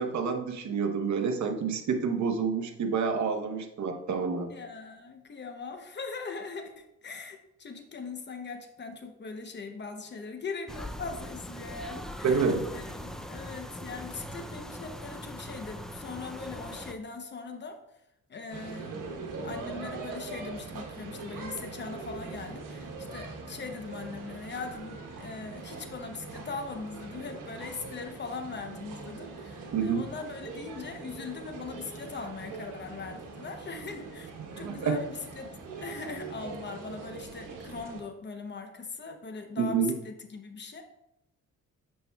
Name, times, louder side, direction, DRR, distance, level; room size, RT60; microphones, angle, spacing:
voice 1, 0.0-4.5 12.2-12.7 29.7-30.0 34.6-35.0 39.6-39.9, right 5 dB, 65° right, 5 dB, 0.9 m, -28 dB
voice 2, 4.5-17.8 18.3-19.2 19.4-34.3 34.6-35.5 35.8-40.8, left 4 dB, 35° left, 6 dB, 0.8 m, -40 dB
sound 1, 10.7-16.9, equal, ahead, 0.4 m, -41 dB
sound 2, 18.5-38.0, right 3 dB, 85° right, 1.2 m, -42 dB
8.7 x 5.5 x 2.3 m, 0.85 s
cardioid pair, 110°, 31 cm